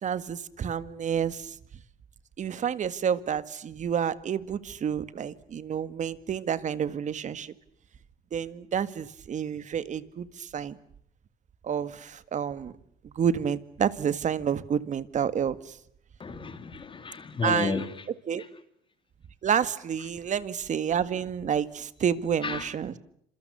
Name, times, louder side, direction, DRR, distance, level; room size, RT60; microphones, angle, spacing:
voice 1, 0.0-1.6 2.4-7.5 8.3-10.8 11.6-12.7 13.0-15.8 17.4-17.8 18.3-18.4 19.4-23.0, right 8 dB, 45° right, 1.9 m, -29 dB
voice 2, 16.2-18.0 22.4-22.7, left 4 dB, 30° left, 2.8 m, -32 dB
29.0 x 26.5 x 7.0 m
cardioid pair, 110°, 17 cm